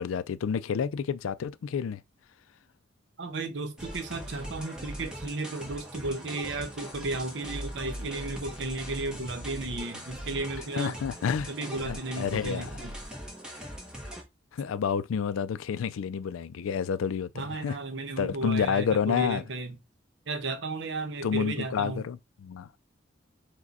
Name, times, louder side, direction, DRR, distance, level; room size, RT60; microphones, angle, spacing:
voice 1, 0.0-2.0 10.7-11.5 11.9-12.7 14.5-17.8 18.2-19.4 21.2-22.7, left 7 dB, 85° left, 0.3 m, -29 dB
voice 2, 3.2-11.0 11.5-12.9 17.3-19.8 20.3-22.1, right 2 dB, 65° right, 0.8 m, -34 dB
sound 1, 3.8-14.2, equal, 5° right, 1.0 m, -40 dB
4.8 x 2.2 x 4.0 m
head